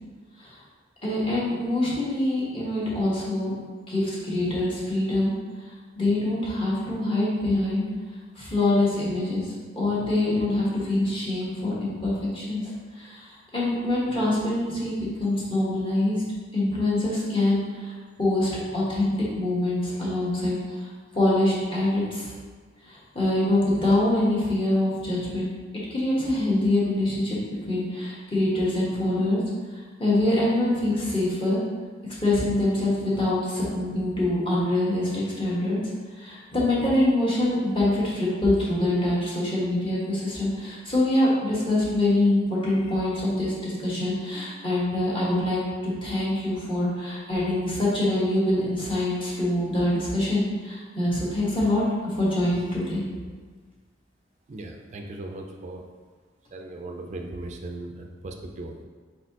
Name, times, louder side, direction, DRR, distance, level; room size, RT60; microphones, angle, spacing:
voice 1, 1.0-3.6 3.9-5.3 6.0-7.9 8.4-9.4 9.7-13.2 13.5-16.2 16.5-17.9 18.2-20.6 21.1-22.3 22.9-25.5 25.9-27.4 27.7-29.4 30.0-31.6 32.2-35.8 36.2-51.8 52.2-53.0, left 1 dB, 25° left, -7 dB, 1.2 m, -24 dB
voice 2, 54.5-55.8 56.5-58.8, right 2 dB, 35° right, 3 dB, 0.4 m, -38 dB
4.5 x 4.1 x 2.8 m, 1.5 s
head